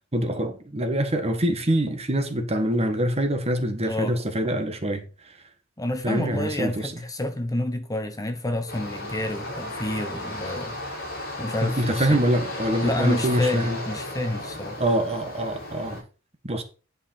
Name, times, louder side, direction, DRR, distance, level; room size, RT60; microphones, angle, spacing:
voice 1, 0.0-5.0 6.0-6.9 11.6-13.8 14.8-16.0 16.4-16.6, right 1 dB, 30° right, 1.4 m, -25 dB
voice 2, 5.8-10.8 11.4-12.2 12.8-14.8, left 1 dB, 15° left, 0.9 m, -29 dB
sound 1, 8.7-16.0, left 1 dB, 50° left, 5.2 m, -34 dB
10.5 x 5.4 x 4.3 m
head